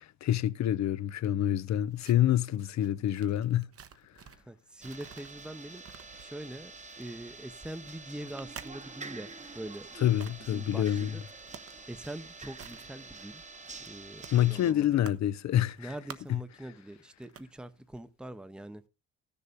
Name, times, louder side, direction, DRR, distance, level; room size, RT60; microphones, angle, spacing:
voice 1, 0.0-3.7 10.0-11.2 14.3-15.9 16.3-16.4, left 12 dB, 65° left, 0.8 m, -27 dB
sound 1, 1.4-4.5 4.8-9.2 9.9-10.4 11.3-11.8 12.1-12.9 13.2-13.3 13.6-15.3 15.6-16.5 17.0-17.5 17.8-18.0, right 7 dB, 50° right, 1.2 m, -50 dB
voice 2, 4.5-5.8 6.2-6.7 7.0-9.9 10.5-11.2 11.9-13.4 13.9-15.0 15.8-18.8, right 1 dB, 5° right, 0.8 m, -43 dB
sound 2, 4.8-14.7, right 4 dB, 25° right, 1.1 m, -47 dB
15.0 x 6.9 x 5.1 m
cardioid pair, 90°, 30 cm